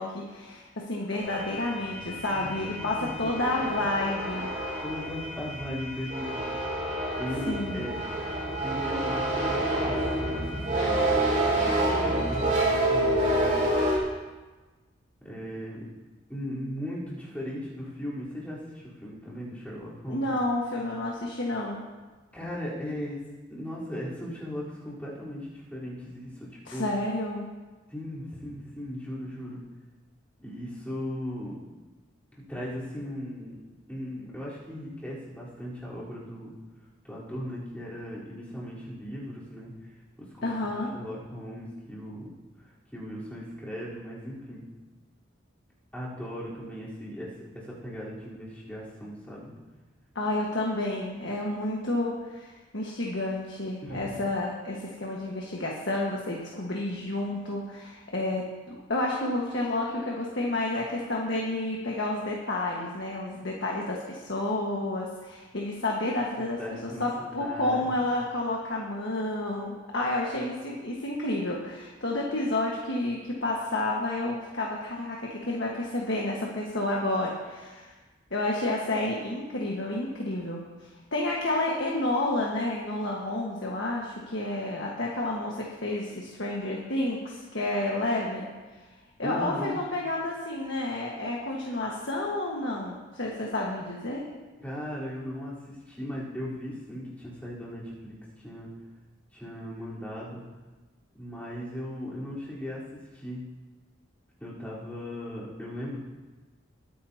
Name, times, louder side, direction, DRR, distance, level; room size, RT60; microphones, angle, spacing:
voice 1, 0.0-4.5 7.5-7.8 20.1-21.8 26.7-27.5 40.4-40.9 50.1-52.5 52.7-77.9 78.3-88.5 89.2-94.3, left 2 dB, 65° left, -2 dB, 1.6 m, -30 dB
sound 1, 1.2-14.0, right 1 dB, 40° right, 4.5 m, -28 dB
voice 2, 2.3-3.3 3.6-3.8 4.8-6.9 7.2-8.0 8.6-11.7 12.0-13.7 15.2-15.8 16.3-20.3 22.3-23.2 23.5-26.9 27.9-29.6 30.4-31.6 32.3-33.5 33.9-36.5 37.0-39.7 40.4-42.3 42.9-44.6 45.9-49.5 53.8-54.1 66.6-67.8 89.2-89.9 94.6-98.7 99.3-100.4 101.2-103.4 104.4-106.0, equal, 5° left, -8 dB, 4.0 m, -38 dB
21.0 x 10.0 x 2.9 m, 1.3 s
head